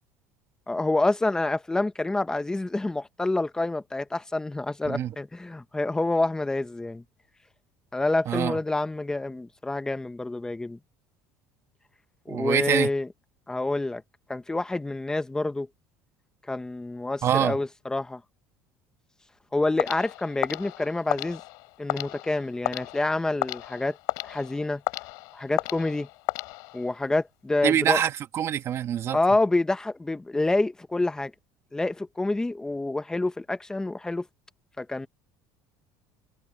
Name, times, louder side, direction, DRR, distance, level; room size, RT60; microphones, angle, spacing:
voice 1, 0.7-7.0 7.9-10.8 12.3-13.1 13.5-14.0 14.3-15.7 16.5-18.2 19.5-21.4 21.8-24.0 24.2-24.8 25.3-26.1 26.7-28.0 29.1-31.3 31.7-34.3 34.8-35.1, left 2 dB, 10° left, 1.1 m, -27 dB
voice 2, 4.8-5.1 8.3-8.6 12.3-12.9 17.2-17.6 27.6-29.2, right 10 dB, 45° right, 2.3 m, -25 dB
sound 1, 19.8-27.0, left 26 dB, 75° left, 6.7 m, -34 dB
cardioid pair, 120°, 7 cm